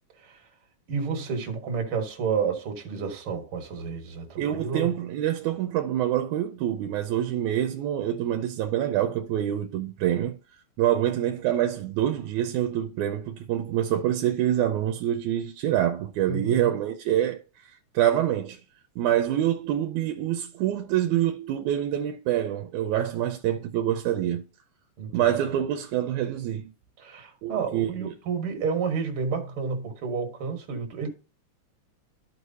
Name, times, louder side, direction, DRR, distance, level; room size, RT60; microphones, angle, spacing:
voice 1, 0.9-4.9 16.2-16.7 25.0-25.4 27.0-31.1, right 5 dB, 50° right, 2.1 m, -30 dB
voice 2, 4.4-10.4 10.8-18.6 19.0-24.4 25.1-26.7 27.4-28.1, right 11 dB, 85° right, 2.0 m, -26 dB
13.5 x 4.7 x 2.7 m
omnidirectional pair, 3.4 m